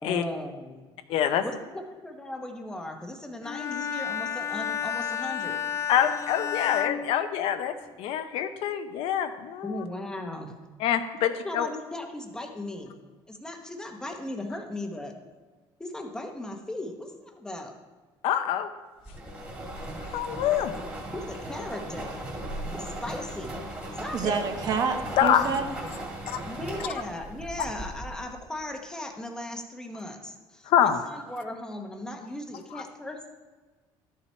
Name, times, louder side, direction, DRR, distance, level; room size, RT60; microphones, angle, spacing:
voice 1, 0.0-0.8 1.4-5.6 9.6-10.6 11.4-13.0 13.3-15.1 15.8-17.7 21.1-22.3 22.7-23.6 24.0-24.4 26.4-33.3, left 1 dB, 5° left, 3 dB, 0.9 m, -37 dB
voice 2, 1.1-1.4 5.9-9.8 10.8-11.7 18.2-18.7 20.0-20.7 25.2-25.5 26.3-26.4 30.7-31.1 32.7-32.8, left 10 dB, 65° left, 8 dB, 0.7 m, -25 dB
Bowed string instrument, 3.4-7.9, left 8 dB, 30° left, 0.4 m, -32 dB
sound 1, 19.1-28.4, right 1 dB, 15° right, 2.1 m, -37 dB
voice 3, 24.1-25.7, right 5 dB, 40° right, 5 dB, 1.0 m, -28 dB
12.5 x 7.2 x 4.3 m, 1.3 s
cardioid pair, 180°, 10 cm